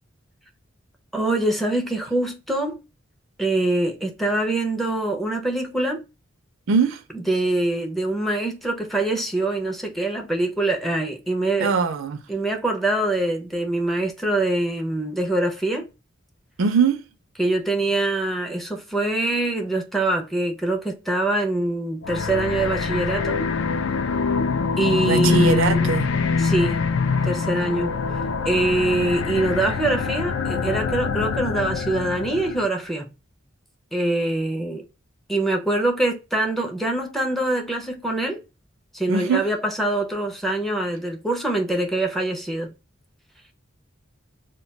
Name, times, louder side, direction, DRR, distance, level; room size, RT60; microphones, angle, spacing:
voice 1, 1.1-2.8 3.4-6.0 7.1-11.7 12.3-15.9 17.4-23.4 24.8-26.0 26.4-26.9 27.2-27.9 28.4-33.1 33.9-34.9 35.3-38.4 38.9-42.7, right 2 dB, ahead, 0.5 m, -24 dB
voice 2, 6.7-7.0 11.6-12.2 16.6-17.0 25.1-26.1 39.1-39.4, right 5 dB, 70° right, 0.4 m, -21 dB
sound 1, 22.0-32.7, left 5 dB, 70° left, 0.4 m, -24 dB
2.2 x 2.2 x 3.9 m
head